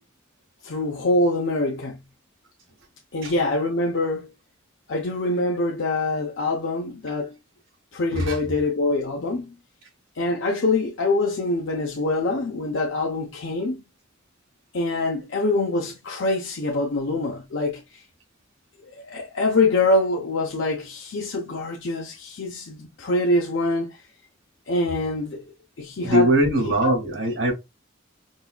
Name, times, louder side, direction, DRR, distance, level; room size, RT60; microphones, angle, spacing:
voice 1, 0.6-2.0 3.1-4.3 4.9-7.4 7.9-9.5 10.1-13.8 14.7-18.0 18.9-24.0 24.7-25.5 25.8-26.3 26.8-26.9, left 2 dB, 85° left, 0.7 m, -24 dB
voice 2, 26.0-27.5, right 1 dB, 90° right, 2.1 m, -21 dB
5.3 x 2.4 x 2.3 m
head